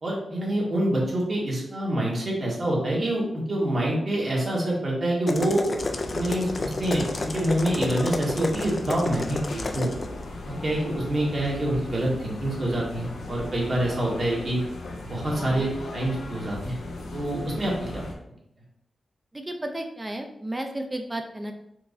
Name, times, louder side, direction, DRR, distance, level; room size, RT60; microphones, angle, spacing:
voice 1, 0.0-5.7 6.1-9.9 10.4-14.6 15.0-16.8 17.1-18.0, right 1 dB, 45° right, -3 dB, 1.5 m, -26 dB
sound 1, 5.3-10.1, left 2 dB, 40° left, 0.4 m, -31 dB
sound 2, 5.7-18.1, left 2 dB, 90° left, 0.6 m, -37 dB
voice 2, 15.3-15.7 19.3-21.5, right 1 dB, 20° right, 5 dB, 0.5 m, -33 dB
4.5 x 3.1 x 2.6 m, 0.77 s
wide cardioid pair, 90°, 0 cm